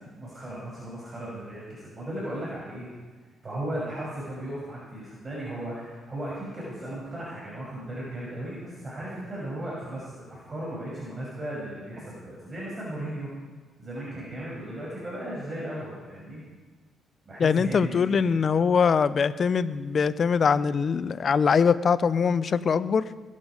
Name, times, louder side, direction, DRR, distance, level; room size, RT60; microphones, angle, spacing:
voice 1, 0.2-2.9 3.4-13.3 13.8-16.4 17.2-18.3, right 1 dB, 30° right, -6 dB, 6.7 m, -36 dB
voice 2, 17.4-23.1, left 6 dB, 50° left, 15 dB, 0.7 m, -22 dB
22.0 x 11.0 x 5.1 m, 1.3 s
cardioid pair, 90°, 0 cm